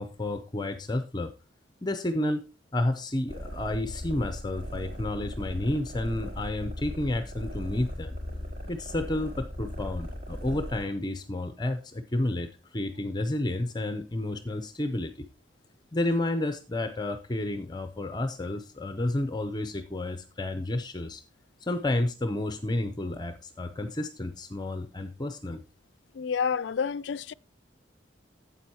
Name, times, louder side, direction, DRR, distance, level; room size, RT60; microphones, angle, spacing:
voice 1, 0.0-1.3 1.8-2.4 2.7-8.2 8.7-15.1 15.9-21.2 21.6-25.6, left 1 dB, 20° left, 0.6 m, -31 dB
sound 1, 3.3-10.8, equal, 35° right, 4.7 m, -38 dB
voice 2, 26.1-27.3, left 6 dB, 70° left, 0.4 m, -29 dB
12.5 x 8.4 x 2.9 m
head